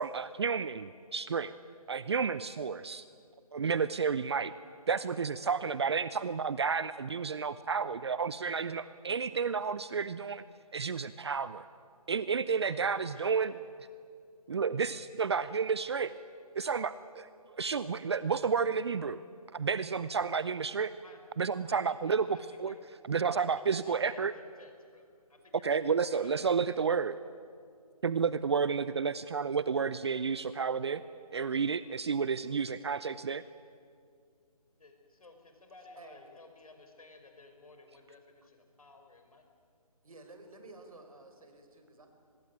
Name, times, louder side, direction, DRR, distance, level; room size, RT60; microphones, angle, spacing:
voice 1, 0.0-1.5 1.9-3.1 3.5-4.5 4.9-10.4 10.7-11.6 12.1-13.5 14.5-16.1 16.5-17.3 17.5-19.2 19.5-20.9 21.4-22.7 23.1-24.3 25.6-27.2 28.0-31.0 31.3-33.4, right 5 dB, 45° right, 15 dB, 0.6 m, -31 dB
voice 2, 5.4-6.0 12.6-13.6 21.0-21.2 21.7-21.8 22.1-22.8 23.4-24.3 24.6-25.8 26.1-26.9 34.8-39.4, left 3 dB, 70° left, 5 dB, 5.4 m, -55 dB
voice 3, 35.9-36.3 40.0-42.1, right 2 dB, 65° right, 5 dB, 5.2 m, -52 dB
24.0 x 21.0 x 9.4 m, 2.3 s
figure-of-eight pair, 160°, 19 cm